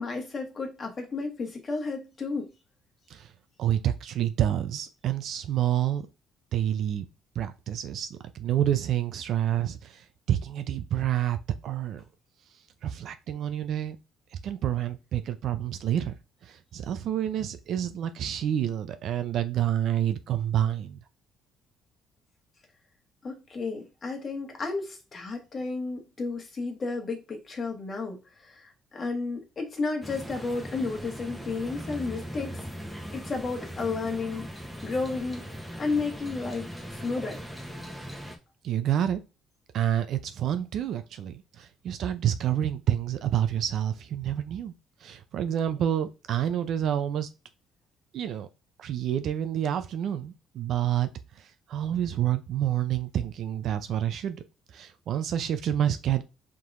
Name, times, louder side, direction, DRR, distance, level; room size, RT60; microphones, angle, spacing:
voice 1, 0.0-2.5 23.2-32.6 33.1-35.5 35.8-37.4, left 3 dB, 35° left, 1.4 m, -32 dB
voice 2, 3.6-6.1 6.5-7.1 7.4-11.4 11.6-12.0 12.8-14.0 14.3-16.1 16.4-21.0 38.6-39.2 39.7-44.7 45.0-47.3 48.1-48.5 48.8-51.1 51.7-54.4 54.7-56.2, right 10 dB, 65° right, 0.5 m, -28 dB
sound 1, 30.0-38.4, equal, ahead, 1.0 m, -39 dB
4.7 x 3.8 x 2.6 m
cardioid pair, 110°, 0 cm